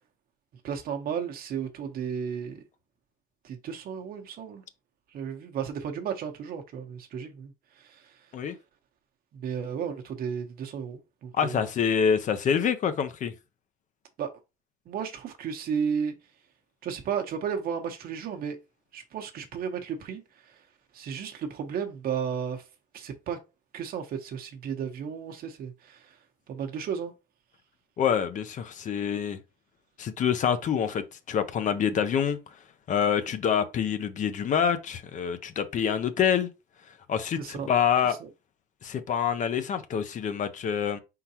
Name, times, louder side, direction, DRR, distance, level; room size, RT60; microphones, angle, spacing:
voice 1, 0.6-2.6 3.4-4.6 5.1-8.1 9.3-11.7 14.2-14.3 14.9-16.2 16.8-18.6 18.9-20.5 20.9-22.6 22.9-23.4 23.7-26.2 26.5-27.1 37.4-37.7 38.0-38.3, right 7 dB, 60° right, 0.9 m, -34 dB
voice 2, 11.3-13.3 28.0-29.4 30.0-32.4 32.9-36.5 37.1-38.2 38.8-41.0, left 8 dB, 50° left, 0.6 m, -26 dB
4.4 x 3.8 x 2.8 m
cardioid pair, 110°, 17 cm